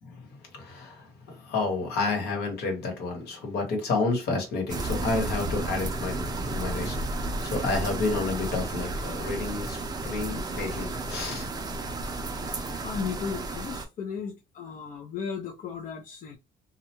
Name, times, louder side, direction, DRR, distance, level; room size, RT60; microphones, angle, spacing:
voice 1, 0.0-9.8 10.0-11.5, left 3 dB, 75° left, 1.2 m, -30 dB
sound 1, 4.7-13.9, right 2 dB, 25° right, 0.5 m, -32 dB
voice 2, 12.6-16.4, left 6 dB, 50° left, 0.5 m, -35 dB
2.3 x 2.2 x 2.9 m
cardioid pair, 110°, 17 cm